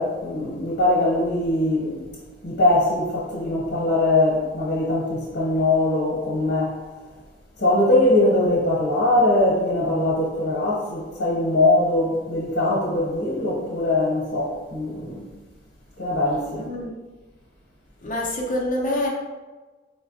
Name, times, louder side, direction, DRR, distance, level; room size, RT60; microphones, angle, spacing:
voice 1, 0.0-2.0 2.4-6.8 7.6-15.2 16.0-16.7, left 2 dB, 90° left, 0.8 m, -21 dB
voice 2, 16.5-16.9 18.0-19.1, left 1 dB, 45° left, 0.6 m, -26 dB
4.0 x 2.1 x 2.6 m
head